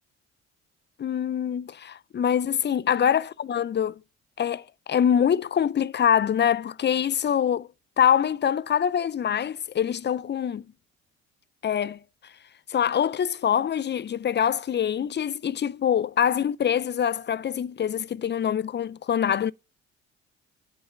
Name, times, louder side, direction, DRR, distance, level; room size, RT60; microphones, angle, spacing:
voice 1, 1.0-4.0 4.4-7.7 8.0-10.6 11.6-12.0 12.7-19.5, left 9 dB, 35° left, 0.5 m, -24 dB
9.4 x 7.8 x 6.7 m
hypercardioid pair, 55°, 33 cm